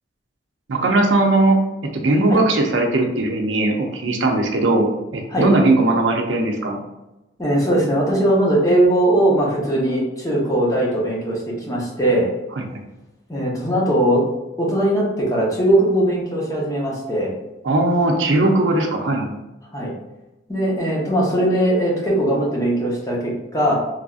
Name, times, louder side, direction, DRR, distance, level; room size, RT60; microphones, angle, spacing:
voice 1, 0.7-1.6 1.9-6.8 12.6-12.8 17.6-19.3, right 2 dB, 85° right, 2 dB, 0.5 m, -19 dB
voice 2, 7.4-12.3 13.3-14.2 14.6-17.3 19.7-19.9 20.5-23.7, right 1 dB, 20° left, -4 dB, 0.8 m, -19 dB
3.3 x 2.5 x 2.4 m, 0.98 s
head